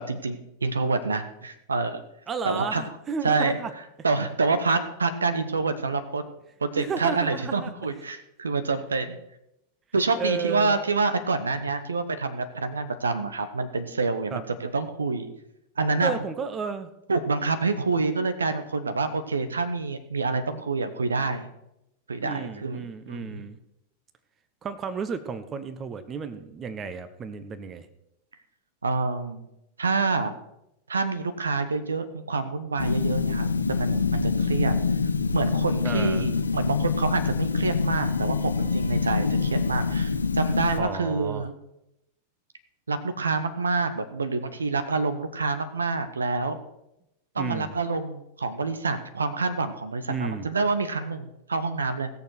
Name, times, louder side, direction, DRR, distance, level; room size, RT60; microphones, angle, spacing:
voice 1, 0.0-2.0 2.4-2.8 3.2-3.6 4.0-6.2 6.6-9.2 9.9-15.3 15.8-16.1 17.1-21.5 22.1-23.4 28.8-29.5 29.8-30.3 30.9-34.7 35.3-41.5 42.9-46.6 47.3-52.1, right 4 dB, 75° right, 10 dB, 1.0 m, -27 dB
voice 2, 2.3-3.7 6.8-7.7 10.1-10.8 14.3-14.4 16.0-16.9 22.2-23.6 24.6-27.9 35.8-36.3 40.8-41.4 47.4-47.7 50.1-50.5, right 5 dB, 25° right, 11 dB, 1.0 m, -32 dB
sound 1, 32.8-40.8, left 5 dB, 75° left, 0.8 m, -25 dB
17.5 x 6.8 x 6.2 m, 0.85 s
figure-of-eight pair, 90°, 0 cm